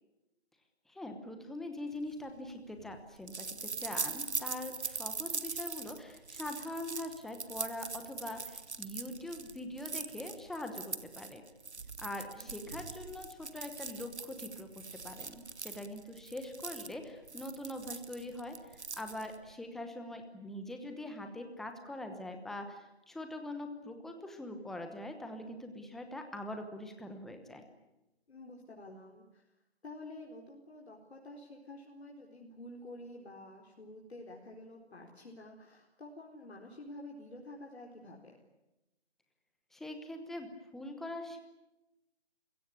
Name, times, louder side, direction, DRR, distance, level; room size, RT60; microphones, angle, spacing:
voice 1, 0.9-11.4 12.0-27.6 39.7-40.5 40.7-41.4, left 1 dB, ahead, 5 dB, 1.0 m, -43 dB
sound 1, 2.1-19.5, right 4 dB, 90° right, 1.4 m, -42 dB
voice 2, 28.3-29.4 29.8-38.3, left 1 dB, 75° left, -1 dB, 4.3 m, -49 dB
28.0 x 17.0 x 10.0 m, 0.97 s
figure-of-eight pair, 155°, 33 cm